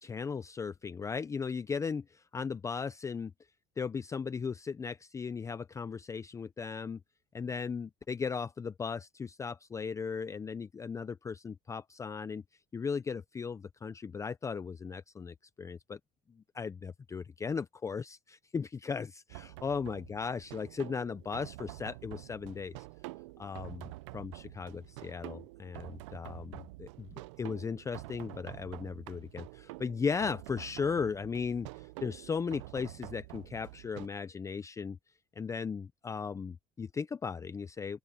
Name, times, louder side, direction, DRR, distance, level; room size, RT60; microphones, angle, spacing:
voice 1, 0.0-3.3 3.8-7.0 7.3-12.4 12.7-16.0 16.5-22.8 23.4-27.1 27.4-35.0 35.4-38.0, left 5 dB, 20° left, 0.6 m, -37 dB
sound 1, 19.3-34.1, right 20 dB, 90° right, 0.6 m, -47 dB
open air
supercardioid pair, 105°, 15 cm